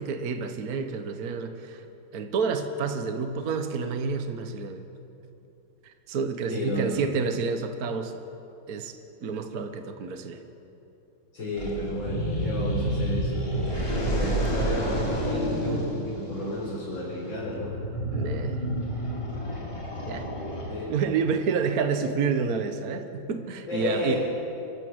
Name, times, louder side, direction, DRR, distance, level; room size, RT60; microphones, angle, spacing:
voice 1, 0.0-1.8 2.1-4.8 5.8-8.1 8.7-10.4 18.1-18.7 20.1-20.3 20.9-24.2, right 5 dB, 50° right, 7 dB, 1.6 m, -29 dB
voice 2, 6.5-7.0 11.3-13.3 13.9-17.7 20.7-21.1 23.7-24.2, left 1 dB, 75° left, -7 dB, 5.2 m, -31 dB
sound 1, 11.5-21.1, right 1 dB, 15° left, 4.0 m, -30 dB
27.0 x 13.5 x 7.9 m, 2.8 s
omnidirectional pair, 2.1 m